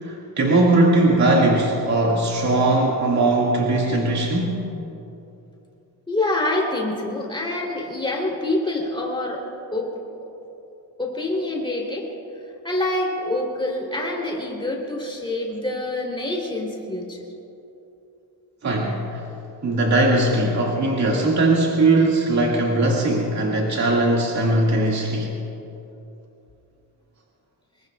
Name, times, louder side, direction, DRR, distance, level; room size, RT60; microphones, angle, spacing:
voice 1, 0.0-4.6 18.6-19.2 19.6-25.4, right 2 dB, 40° right, -2 dB, 2.1 m, -20 dB
voice 2, 6.1-9.4 9.7-9.9 11.0-12.1 12.6-17.3, left 2 dB, 10° left, -2 dB, 3.3 m, -26 dB
25.5 x 22.0 x 2.4 m, 2.9 s
cardioid pair, 145°, 44 cm